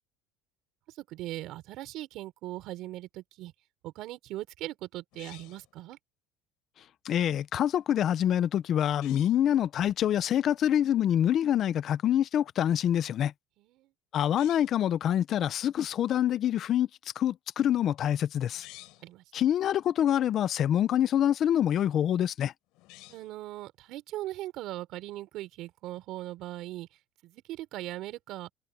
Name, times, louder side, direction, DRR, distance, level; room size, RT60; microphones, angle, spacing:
voice 1, 1.0-3.5 3.8-6.0 13.6-13.9 19.0-19.2 23.1-26.9 27.2-28.5, right 15 dB, 55° right, 4.2 m, -39 dB
sound 1, 5.1-5.7 8.9-9.4 14.2-14.8 18.4-19.1 22.7-23.4, left 20 dB, 65° left, 4.2 m, -51 dB
voice 2, 7.0-13.3 14.1-16.9 17.2-18.7 19.3-22.5, left 10 dB, 40° left, 0.6 m, -26 dB
cardioid pair, 150°, 0 cm